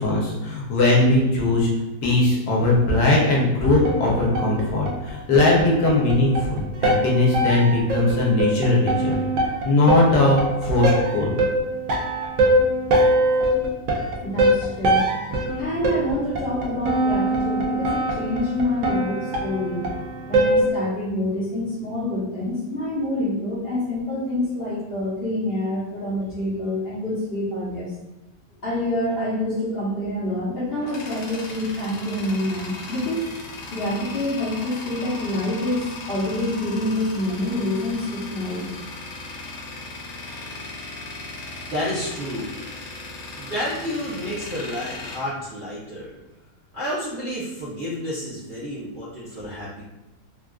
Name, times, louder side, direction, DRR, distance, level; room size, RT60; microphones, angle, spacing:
voice 1, 0.0-1.7 2.0-9.2 9.6-11.3, left 2 dB, 70° left, -3 dB, 1.2 m, -19 dB
sound 1, 3.8-20.7, right 1 dB, 70° right, 0.9 m, -23 dB
voice 2, 14.2-15.1 15.6-19.9 20.3-27.9 28.6-33.2 33.7-38.7, left 1 dB, 45° left, -7 dB, 1.0 m, -27 dB
Tools, 30.3-46.2, left 2 dB, 85° left, 1.2 m, -37 dB
voice 3, 41.7-42.5 43.4-46.1 46.7-49.8, equal, 50° right, -11 dB, 0.6 m, -30 dB
3.5 x 2.4 x 2.3 m, 0.99 s
omnidirectional pair, 1.8 m